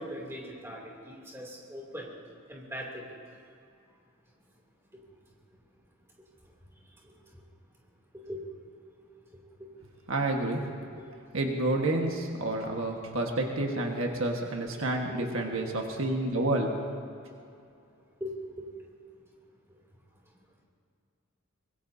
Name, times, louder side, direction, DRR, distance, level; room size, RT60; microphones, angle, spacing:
voice 1, 0.0-2.1 2.5-3.0 8.3-8.4 10.6-10.7 14.9-15.3 18.2-18.7, equal, 10° right, -3 dB, 2.8 m, -40 dB
voice 2, 10.1-10.6 11.3-16.7, right 2 dB, 70° right, 1 dB, 1.5 m, -29 dB
24.0 x 21.5 x 2.8 m, 2.5 s
head